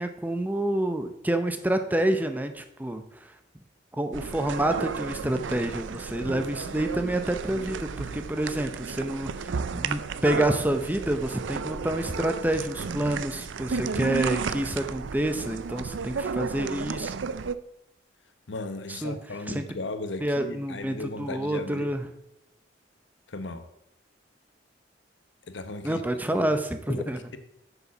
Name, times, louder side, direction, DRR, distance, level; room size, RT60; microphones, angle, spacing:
voice 1, 0.0-3.3 4.0-17.1 18.9-19.2 19.5-19.6 20.2-22.1 25.8-27.2, right 1 dB, 10° right, 0.6 m, -28 dB
sound 1, 4.1-17.5, right 5 dB, 90° right, 0.5 m, -33 dB
voice 2, 13.7-14.1 18.5-21.9 23.3-23.6 25.5-26.0 26.3-26.5 26.9-27.4, left 2 dB, 75° left, 0.9 m, -36 dB
8.3 x 7.0 x 6.0 m
head